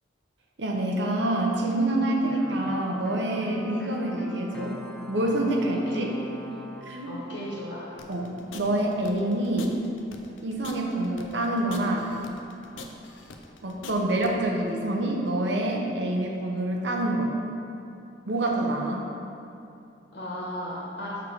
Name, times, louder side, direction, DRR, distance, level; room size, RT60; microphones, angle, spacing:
voice 1, 0.6-4.8 5.1-6.1 6.9-7.1 8.1-9.7 10.4-12.1 13.6-17.3 18.3-19.1, right 1 dB, 70° right, 0 dB, 0.8 m, -26 dB
sound 1, 2.3-8.4, equal, 5° left, 0.4 m, -44 dB
voice 2, 5.6-6.0 7.0-7.9 20.1-21.1, equal, 70° left, -6 dB, 1.5 m, -36 dB
sound 2, 8.0-14.3, left 4 dB, 90° left, 0.5 m, -43 dB
6.0 x 4.6 x 4.7 m, 2.7 s
head